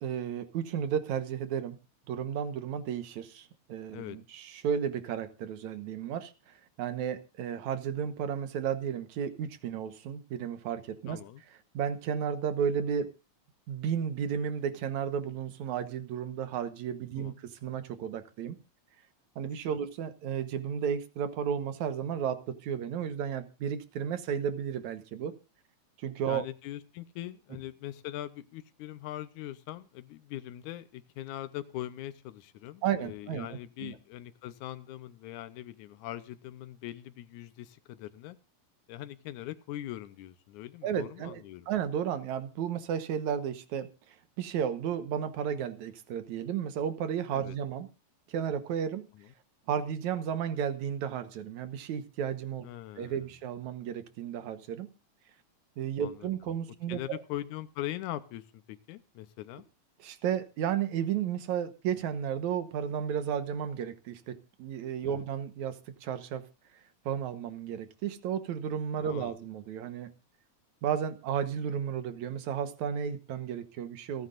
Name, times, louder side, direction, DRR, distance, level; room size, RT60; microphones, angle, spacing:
voice 1, 0.0-1.8 2.1-6.3 6.8-11.2 11.7-13.1 13.7-18.6 19.4-25.3 26.0-26.5 32.8-33.5 33.8-34.0 40.8-43.9 44.4-47.9 48.3-49.1 49.7-52.7 53.0-54.9 55.8-57.2 60.0-66.4 67.1-70.1 70.8-74.3, right 8 dB, 80° right, 2.5 m, -33 dB
voice 2, 11.1-11.4 17.2-17.4 19.7-19.8 26.3-38.4 38.9-41.7 47.3-47.6 49.1-49.3 52.6-53.2 56.0-56.3 56.9-59.6 65.0-65.3 69.0-69.4, left 14 dB, 90° left, 2.3 m, -41 dB
28.5 x 9.6 x 2.5 m
omnidirectional pair, 3.3 m